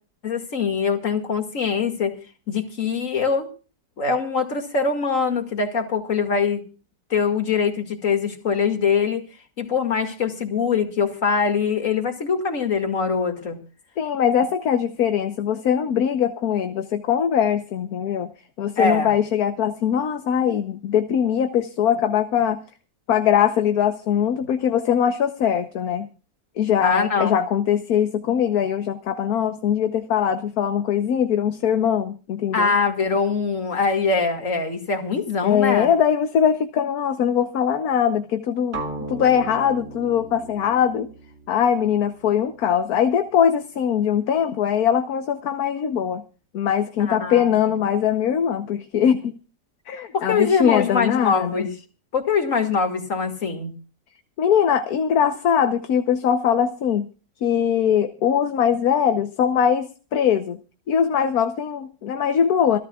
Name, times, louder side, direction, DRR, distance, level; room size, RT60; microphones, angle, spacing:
voice 1, 0.2-2.2 2.5-3.5 4.0-6.6 7.1-9.2 9.6-13.6 18.8-19.1 26.8-27.4 32.5-35.9 47.0-47.5 50.1-51.7 52.1-53.7, left 5 dB, 50° left, 5 dB, 2.6 m, -23 dB
voice 2, 14.0-18.3 18.6-22.6 23.1-26.1 26.6-32.7 35.4-38.8 39.1-41.1 41.5-46.2 46.5-49.4 49.9-51.7 54.4-57.1 57.4-60.6 60.9-62.8, left 8 dB, 65° left, 8 dB, 1.4 m, -21 dB
sound 1, 38.7-42.7, right 2 dB, 45° right, 2.4 m, -37 dB
27.0 x 13.0 x 2.4 m, 0.36 s
omnidirectional pair, 1.8 m